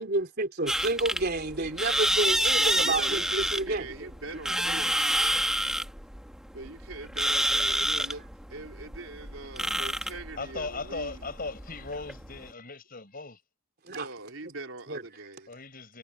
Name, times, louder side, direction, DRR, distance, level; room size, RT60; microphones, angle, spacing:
voice 1, 0.0-4.1 4.7-5.0 13.8-14.1 14.9-15.0, right 2 dB, 50° right, 3.5 m, -30 dB
sound 1, 0.7-12.5, right 1 dB, 5° right, 1.5 m, -28 dB
voice 2, 2.5-5.0 6.5-11.2 13.9-15.5, right 3 dB, 75° right, 3.9 m, -42 dB
voice 3, 10.4-13.4 15.5-16.0, left 3 dB, 45° left, 7.1 m, -38 dB
head